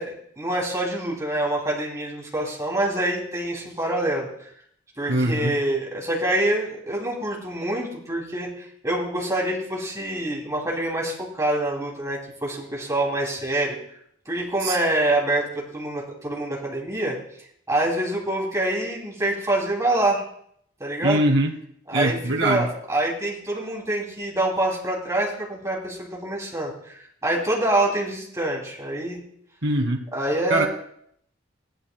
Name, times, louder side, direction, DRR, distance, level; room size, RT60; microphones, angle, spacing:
voice 1, 0.0-4.3 5.0-13.8 14.3-17.2 17.7-20.2 20.8-21.2 21.9-29.2 30.1-30.7, right 1 dB, 15° right, -2 dB, 2.6 m, -26 dB
voice 2, 5.1-5.5 14.6-14.8 21.0-21.5 21.9-22.7 29.6-30.0 30.5-30.7, right 1 dB, 80° right, 2 dB, 1.6 m, -22 dB
16.0 x 11.0 x 2.2 m, 0.69 s
head